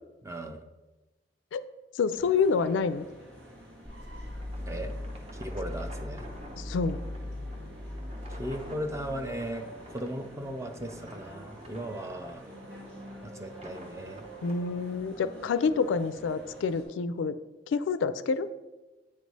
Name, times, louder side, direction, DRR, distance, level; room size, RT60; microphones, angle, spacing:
voice 1, 0.2-0.6 4.7-4.9 5.3-6.3 8.3-12.4 13.2-14.2, right 1 dB, 15° right, 6 dB, 0.4 m, -37 dB
voice 2, 1.9-3.1 6.6-7.0 14.4-17.4 17.7-18.5, left 5 dB, 80° left, 13 dB, 0.3 m, -28 dB
sound 1, 2.1-16.8, right 1 dB, 90° right, 2.1 m, -49 dB
sound 2, 3.7-15.0, right 1 dB, 30° right, 0.8 m, -51 dB
sound 3, 3.8-9.8, left 1 dB, 65° right, 1.3 m, -39 dB
8.4 x 3.2 x 5.2 m, 1.1 s
head